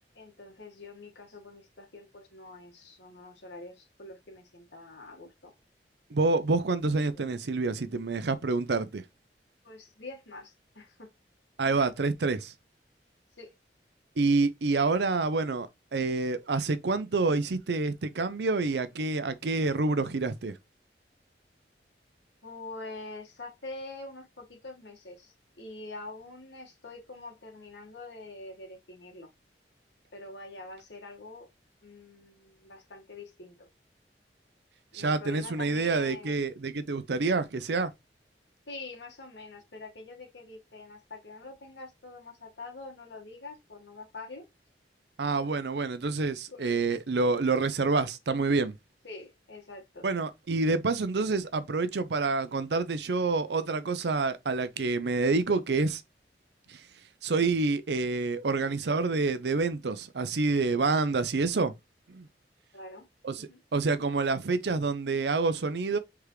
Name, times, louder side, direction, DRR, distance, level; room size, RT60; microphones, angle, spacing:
voice 1, 0.2-5.5 6.5-6.6 7.1-7.3 9.6-11.1 13.4-13.5 22.4-29.3 30.1-31.5 31.8-33.7 34.9-36.4 38.7-44.5 46.5-46.9 49.0-50.0 62.7-63.1 63.3-63.6, left 2 dB, 80° left, 1.6 m, -45 dB
voice 2, 6.1-9.0 11.6-12.5 14.2-20.5 34.9-37.9 45.2-48.8 50.0-56.0 56.7-56.8 57.2-61.7 62.1-62.3 63.2-66.0, right 3 dB, 70° right, 0.6 m, -27 dB
4.9 x 3.5 x 3.1 m
head